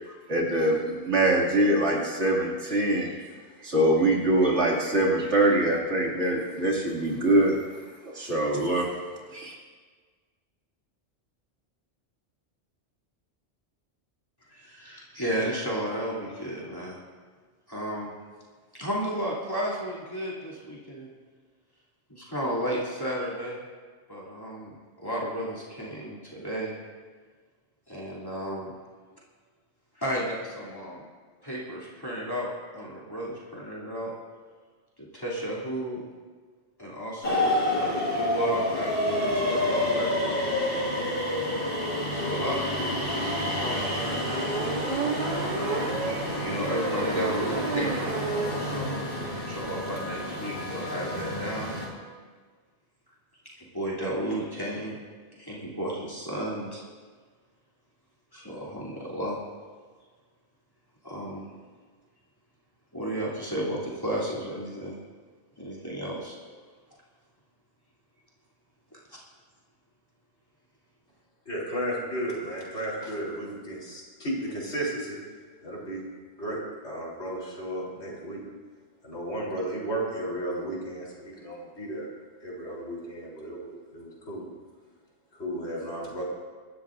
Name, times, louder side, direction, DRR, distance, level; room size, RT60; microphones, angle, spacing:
voice 1, 0.3-3.2 3.6-7.6 8.1-8.9 9.3-9.5, right 1 dB, 85° right, -3 dB, 3.0 m, -23 dB
voice 2, 14.5-17.0 17.7-18.1 18.8-21.1 22.1-23.6 24.1-26.7 27.9-28.7 29.9-31.0 31.4-32.5 32.7-34.1 35.0-36.0 36.8-40.4 42.1-44.5 45.3-48.2 48.6-51.8 53.5-54.9 55.4-56.8 58.3-59.4 61.0-61.5 62.9-64.9 65.6-66.4 68.9-69.0, equal, 20° left, -7 dB, 3.2 m, -33 dB
sound 1, 37.2-51.9, left 1 dB, 55° left, 3.6 m, -29 dB
sound 2, 44.3-48.6 49.0-49.1 49.3-49.4 49.6-49.9, right 4 dB, 35° right, 0.9 m, -32 dB
voice 3, 71.5-75.2 75.6-76.0 76.4-78.4 79.0-82.1 82.4-84.5 85.3-86.2, right 1 dB, 75° left, -4 dB, 4.2 m, -34 dB
25.5 x 12.5 x 2.7 m, 1.5 s
omnidirectional pair, 1.1 m